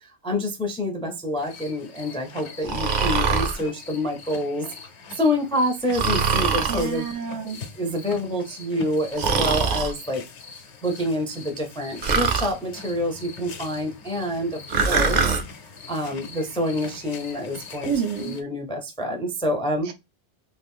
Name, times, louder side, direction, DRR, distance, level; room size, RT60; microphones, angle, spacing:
voice 1, 0.0-4.7 5.2-7.0 7.5-10.2 10.8-14.6 14.8-15.3 15.9-17.9 18.2-19.9, left 1 dB, 5° left, 0.4 m, -27 dB
sound 1, 1.4-18.4, left 4 dB, 70° left, 1.0 m, -42 dB
Breathing, 2.6-3.6 5.9-6.9 9.2-9.9 12.0-12.5 14.7-15.4, right 5 dB, 50° right, 0.6 m, -22 dB
voice 2, 6.6-7.6 17.8-18.4 19.8-19.9, right 7 dB, 85° right, 1.1 m, -28 dB
2.9 x 2.4 x 3.5 m
omnidirectional pair, 1.2 m